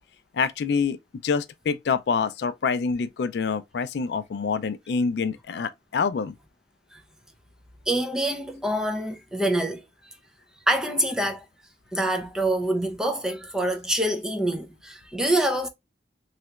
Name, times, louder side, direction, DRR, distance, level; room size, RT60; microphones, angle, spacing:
voice 1, 0.3-1.0 1.2-6.3, left 5 dB, 65° left, 0.3 m, -26 dB
voice 2, 7.9-9.8 10.7-11.4 11.9-15.7, right 1 dB, 5° right, 0.4 m, -26 dB
3.3 x 2.8 x 2.3 m
head